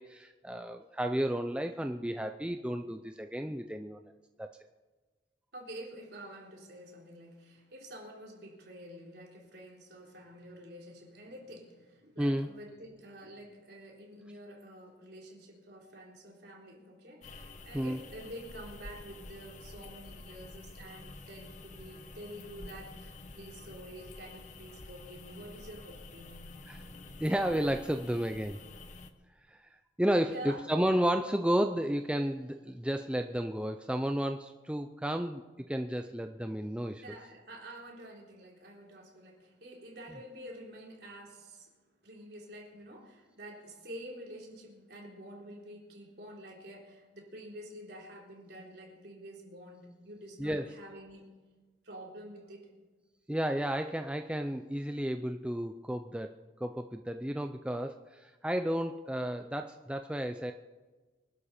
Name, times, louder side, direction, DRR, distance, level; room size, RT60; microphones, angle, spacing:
voice 1, 0.0-4.0 4.4-4.5 12.2-12.5 17.7-18.0 26.7-26.8 27.2-28.6 29.5-29.6 30.0-35.4 35.7-37.0 50.4-50.7 53.3-56.3 56.6-60.5, equal, 5° right, 6 dB, 0.5 m, -32 dB
voice 2, 5.5-26.5 30.3-30.6 37.0-41.8 42.0-51.3 51.8-52.7, right 1 dB, 60° right, -1 dB, 3.8 m, -48 dB
sound 1, 17.2-29.1, left 2 dB, 40° left, 1.0 m, -49 dB
25.0 x 12.0 x 4.4 m, 1.3 s
head